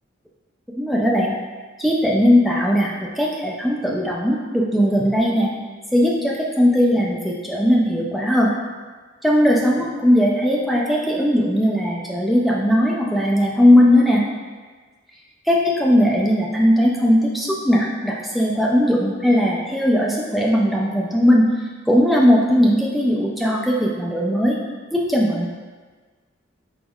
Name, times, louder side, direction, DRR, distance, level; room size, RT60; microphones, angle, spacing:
voice 1, 0.7-1.4 1.8-5.5 5.9-8.5 9.2-14.3 15.5-24.6 24.9-25.5, equal, ahead, -3 dB, 0.3 m, -18 dB
3.9 x 3.5 x 2.3 m, 1.4 s
head